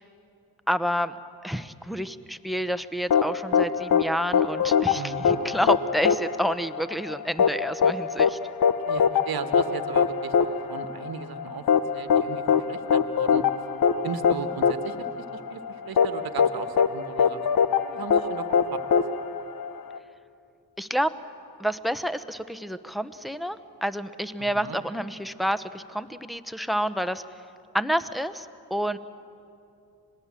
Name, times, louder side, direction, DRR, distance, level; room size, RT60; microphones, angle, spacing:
voice 1, 0.7-1.1 1.4-8.4 20.8-21.1 21.6-27.2 27.7-29.0, equal, ahead, 12 dB, 1.0 m, -29 dB
sound 1, 3.1-20.0, left 7 dB, 60° left, 1.0 m, -23 dB
voice 2, 4.9-5.4 8.9-11.7 11.9-13.4 14.0-15.0 15.3-19.0 24.4-24.8, right 6 dB, 65° right, 9 dB, 1.4 m, -37 dB
26.5 x 19.0 x 7.5 m, 2.6 s
supercardioid pair, 45°, 39 cm